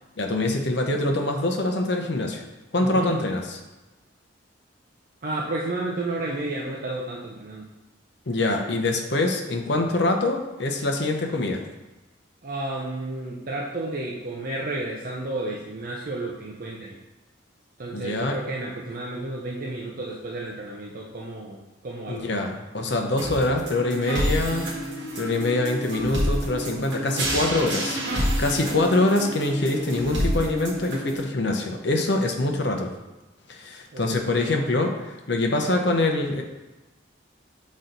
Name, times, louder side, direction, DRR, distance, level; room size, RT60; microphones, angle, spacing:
voice 1, 0.2-2.4 2.7-3.6 8.3-11.6 17.9-18.4 22.1-24.7 25.1-32.9 33.5-36.4, left 2 dB, 60° left, 3 dB, 0.8 m, -24 dB
voice 2, 2.8-3.1 5.2-7.7 12.4-17.0 17.8-21.6 21.8-22.3 33.9-34.5, right 2 dB, 45° right, -2 dB, 0.6 m, -32 dB
sound 1, 23.2-31.2, equal, 65° right, 1.7 m, -28 dB
6.2 x 4.2 x 3.9 m, 1.1 s
head